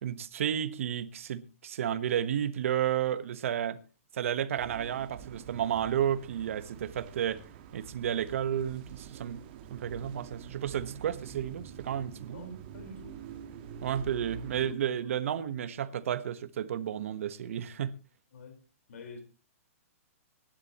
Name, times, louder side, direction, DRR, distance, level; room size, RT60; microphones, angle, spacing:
voice 1, 0.0-3.8 4.1-7.4 7.7-9.4 9.7-12.6 13.8-17.9, right 9 dB, 60° right, 1.2 m, -32 dB
sound 1, 4.5-14.8, right 8 dB, 40° right, 1.5 m, -46 dB
voice 2, 12.0-13.3 14.6-14.8 15.0-16.0 18.3-18.6 18.9-19.2, left 3 dB, 65° left, 4.5 m, -50 dB
25.0 x 11.5 x 3.0 m
hypercardioid pair, 155°, 8 cm